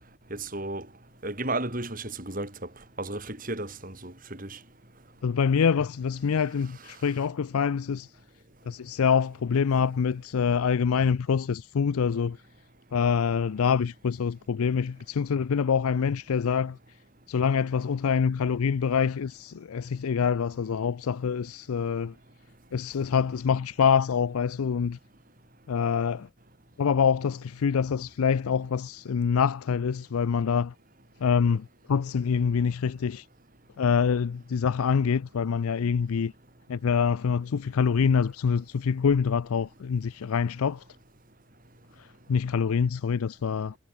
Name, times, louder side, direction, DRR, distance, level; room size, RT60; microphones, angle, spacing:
voice 1, 0.3-0.9 1.2-2.5 3.0-4.6, right 2 dB, 40° right, 4.0 m, -33 dB
voice 2, 5.2-8.1 8.7-12.4 12.9-16.8 17.3-22.1 22.7-25.0 25.7-26.3 26.8-30.7 31.2-33.2 33.8-36.3 36.7-40.8 42.3-43.8, left 6 dB, 85° left, 0.4 m, -25 dB
head